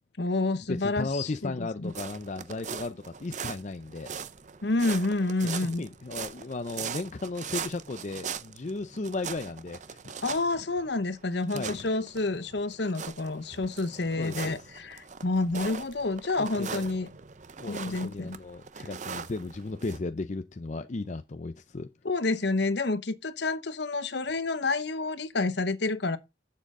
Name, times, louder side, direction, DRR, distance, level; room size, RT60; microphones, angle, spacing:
voice 1, 0.2-1.9 4.6-5.8 10.2-17.1 17.7-18.4 22.0-26.2, left 3 dB, 60° left, 0.9 m, -29 dB
voice 2, 0.7-4.1 5.4-10.2 11.5-11.9 14.2-14.7 16.4-16.8 17.6-21.9, left 3 dB, 35° left, 0.5 m, -35 dB
sound 1, 1.8-20.0, right 6 dB, 40° right, 0.6 m, -41 dB
10.5 x 7.5 x 3.7 m
head